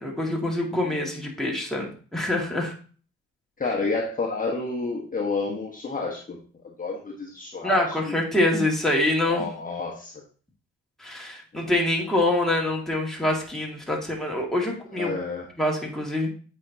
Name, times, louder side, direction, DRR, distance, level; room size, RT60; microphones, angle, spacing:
voice 1, 0.0-2.7 7.6-9.4 11.0-15.1 15.6-16.3, left 1 dB, ahead, -2 dB, 1.9 m, -25 dB
voice 2, 3.6-6.4 6.8-8.2 9.2-10.1 11.5-11.6 14.9-15.5, left 3 dB, 25° left, -2 dB, 1.2 m, -30 dB
8.2 x 4.5 x 2.7 m, 0.40 s
cardioid pair, 90°, 30 cm